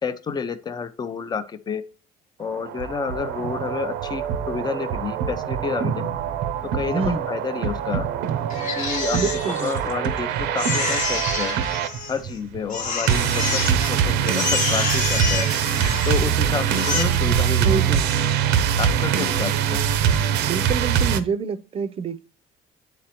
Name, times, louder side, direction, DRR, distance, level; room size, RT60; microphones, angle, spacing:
voice 1, 0.0-1.8 2.4-6.1 6.6-8.1 8.8-9.2 9.6-11.6 12.1-15.5 16.1-17.7 18.8-19.8, left 6 dB, 25° left, 0.5 m, -29 dB
sound 1, 2.4-21.2, right 8 dB, 90° right, 0.6 m, -23 dB
voice 2, 6.9-7.3 9.1-9.7 17.6-18.1 20.5-22.2, right 5 dB, 35° right, 0.5 m, -27 dB
Crying sobbing, 8.5-10.2 10.6-12.4 12.7-13.9 14.2-16.3 16.7-17.0, left 5 dB, 50° left, 1.1 m, -28 dB
9.0 x 4.1 x 2.9 m
cardioid pair, 110°, 17 cm